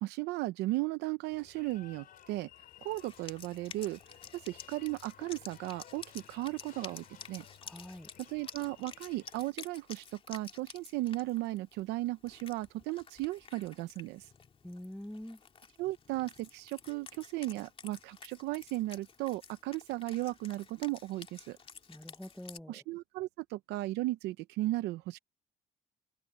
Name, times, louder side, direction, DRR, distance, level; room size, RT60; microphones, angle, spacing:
voice 1, 0.0-2.5 2.8-4.0 4.3-7.4 8.2-14.3 15.8-21.6 22.7-25.2, right 18 dB, 90° right, 0.7 m, -36 dB
sound 1, 1.3-9.5, left 11 dB, 60° left, 3.7 m, -57 dB
Wind instrument woodwind instrument, 2.9-22.6, left 5 dB, 35° left, 2.5 m, -52 dB
voice 2, 7.6-8.1 14.6-15.4 21.9-22.8, left 1 dB, 5° left, 1.0 m, -45 dB
cardioid pair, 110°, 17 cm